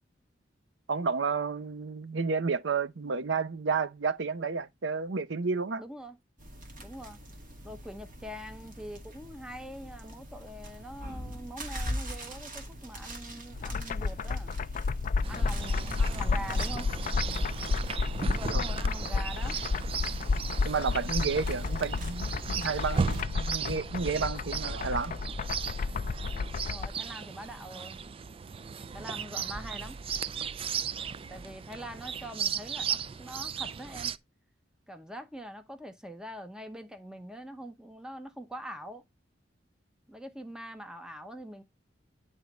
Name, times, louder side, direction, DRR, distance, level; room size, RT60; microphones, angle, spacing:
voice 1, 0.9-5.8 18.5-18.6 20.6-25.1, right 5 dB, 85° right, 0.6 m, -31 dB
voice 2, 5.8-6.2 6.8-7.2 7.6-14.5 15.3-17.1 18.2-19.6 26.7-28.1 28.9-30.0 31.3-34.1 34.9-39.0 40.1-41.6, equal, 5° right, 0.8 m, -44 dB
sound 1, 6.4-23.2, equal, 45° right, 2.2 m, -43 dB
sound 2, 13.5-26.9, left 4 dB, 45° left, 0.4 m, -31 dB
Chirp tweet, 15.2-34.2, right 6 dB, 30° right, 0.3 m, -36 dB
10.5 x 3.5 x 4.1 m
head